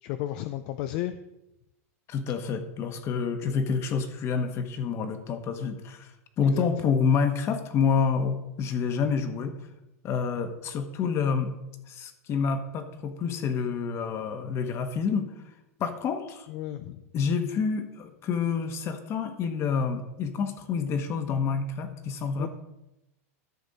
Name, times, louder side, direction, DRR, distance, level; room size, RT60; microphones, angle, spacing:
voice 1, 0.0-1.2 3.4-3.6 6.4-6.7 16.5-17.0 22.4-22.5, left 14 dB, 50° left, 10 dB, 0.5 m, -33 dB
voice 2, 2.1-9.6 10.0-11.5 11.9-15.3 15.8-16.5 17.1-22.5, left 5 dB, 35° left, 8 dB, 1.3 m, -28 dB
13.5 x 6.2 x 4.1 m, 0.94 s
supercardioid pair, 135°, 8 cm